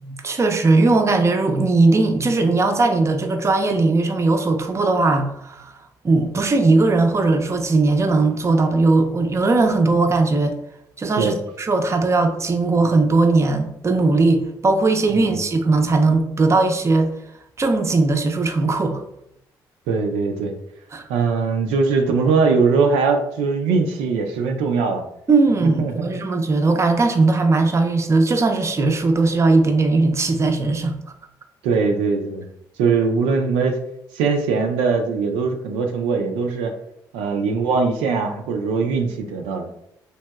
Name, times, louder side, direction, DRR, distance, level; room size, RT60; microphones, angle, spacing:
voice 1, 0.0-5.7 6.0-10.5 11.0-17.1 17.6-19.0 20.9-21.0 25.3-30.9, right 3 dB, 30° right, 5 dB, 0.5 m, -18 dB
voice 2, 19.9-20.5 21.1-25.0 25.6-26.1 31.6-32.5 32.8-33.8 34.1-36.7 37.1-39.7, right 4 dB, 85° right, 3 dB, 0.4 m, -21 dB
2.9 x 2.6 x 2.2 m, 0.75 s
supercardioid pair, 55°, 9 cm